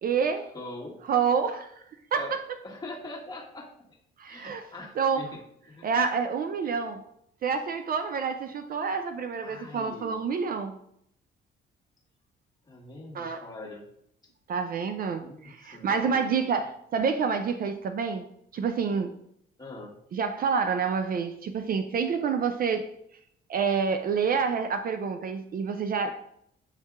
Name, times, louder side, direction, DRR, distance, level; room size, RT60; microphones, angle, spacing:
voice 1, 0.0-0.5 1.1-1.7 2.1-2.2 4.2-4.7 5.0-5.2 5.8-7.0 7.4-10.8 13.1-13.4 14.5-18.2 18.5-19.1 20.1-22.9 23.5-26.2, right 6 dB, 45° right, 7 dB, 0.4 m, -28 dB
voice 2, 0.5-0.9 2.2-2.4 2.6-4.0 4.3-5.4 5.7-5.9 9.4-10.2 12.7-13.8 15.2-16.6 19.6-19.9, left 2 dB, 20° left, -3 dB, 1.4 m, -42 dB
7.8 x 2.6 x 2.4 m, 0.74 s
cardioid pair, 90°, 20 cm